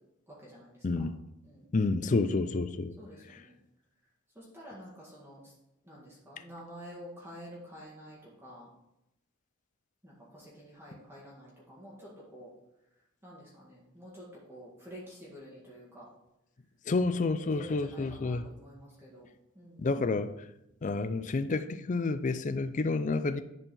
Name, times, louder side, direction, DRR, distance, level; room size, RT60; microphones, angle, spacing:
voice 1, 0.3-1.1 1.4-1.9 3.0-3.5 4.4-5.5 5.8-8.7 10.0-12.5 13.2-16.1 17.5-19.3 19.5-19.9, equal, 10° right, 1.9 m, -49 dB
voice 2, 0.8-1.2 1.7-3.0 3.3-3.4 16.9-18.5 19.8-20.3 20.8-23.4, left 3 dB, 35° left, 0.4 m, -29 dB
10.5 x 4.5 x 4.3 m
head